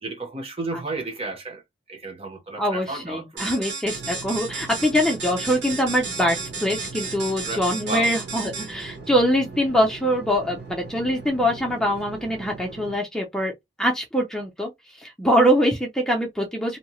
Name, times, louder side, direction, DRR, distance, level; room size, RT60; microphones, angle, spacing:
voice 1, 0.0-1.6 1.9-3.6 7.4-8.2, right 3 dB, 30° right, 0.7 m, -33 dB
voice 2, 2.6-13.5 13.8-14.7 15.0-16.8, equal, 5° left, 0.5 m, -23 dB
sound 1, 3.4-8.9, right 4 dB, 80° right, 1.2 m, -33 dB
sound 2, 3.8-13.0, right 3 dB, 60° right, 1.0 m, -40 dB
2.7 x 2.1 x 3.0 m
head